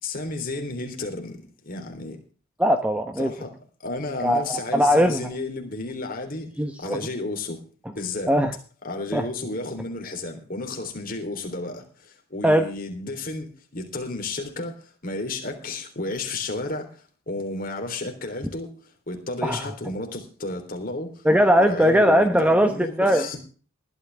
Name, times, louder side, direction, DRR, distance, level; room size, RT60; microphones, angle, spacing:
voice 1, 0.0-1.4 1.6-2.2 3.2-3.5 3.8-6.5 6.8-7.6 8.0-8.3 8.8-18.7 19.1-21.3 21.6-23.4, left 2 dB, 40° left, 3.4 m, -32 dB
voice 2, 2.6-3.3 4.2-5.2 6.6-7.0 8.3-8.5 9.1-9.2 12.4-12.6 19.4-19.6 21.2-23.2, equal, 5° right, 0.9 m, -19 dB
19.5 x 12.0 x 3.5 m
head